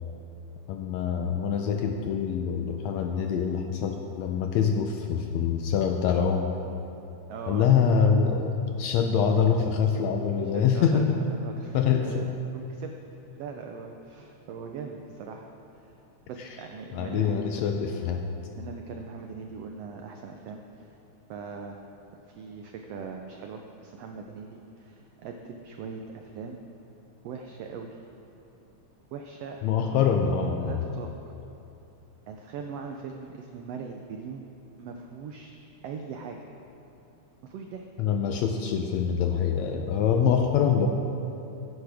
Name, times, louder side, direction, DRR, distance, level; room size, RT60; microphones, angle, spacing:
voice 1, 0.7-6.5 7.5-11.2 11.7-12.3 16.9-18.2 29.6-30.8 38.0-40.9, left 7 dB, 80° left, 4 dB, 1.7 m, -25 dB
voice 2, 7.3-7.7 10.5-12.3 12.5-12.9 13.3-15.5 15.7-15.9 16.3-17.7 18.5-20.9 21.3-21.8 22.3-26.6 27.2-28.0 29.1-29.6 29.9-30.3 30.6-31.1 32.3-34.4 34.8-35.5 35.8-36.4 37.4-37.9, right 5 dB, 85° right, 3 dB, 1.4 m, -40 dB
16.0 x 10.0 x 3.5 m, 2.8 s
omnidirectional pair, 3.5 m